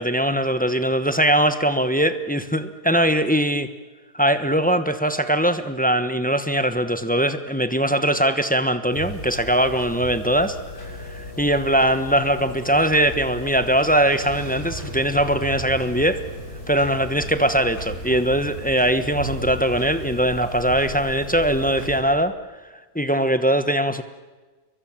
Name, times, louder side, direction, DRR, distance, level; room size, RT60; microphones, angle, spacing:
voice 1, 0.0-3.7 4.1-16.2 16.7-22.3 22.9-24.0, right 1 dB, 5° left, 10 dB, 0.8 m, -21 dB
sound 1, 8.9-22.0, left 1 dB, 85° left, 7.6 m, -35 dB
sound 2, 12.1-17.6, right 1 dB, 45° right, 6.2 m, -43 dB
29.5 x 22.5 x 7.4 m, 1.3 s
omnidirectional pair, 1.8 m